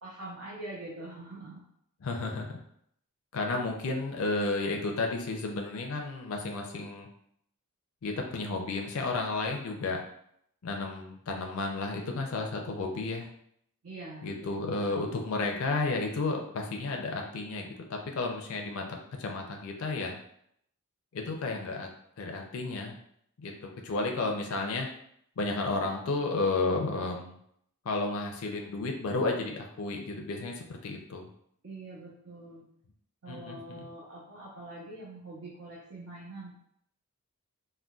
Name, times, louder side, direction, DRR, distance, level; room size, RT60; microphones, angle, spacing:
voice 1, 0.0-1.6 13.8-14.3 14.6-14.8 31.6-32.6 33.2-36.6, right 2 dB, 65° right, -6 dB, 0.7 m, -44 dB
voice 2, 2.0-2.6 3.3-7.1 8.0-10.0 10.6-13.3 14.2-20.2 21.1-21.9 22.2-23.0 23.4-24.9 25.4-27.4 27.9-31.3 33.3-33.9, left 3 dB, 70° left, 2 dB, 0.4 m, -32 dB
3.7 x 2.2 x 2.3 m, 0.70 s
head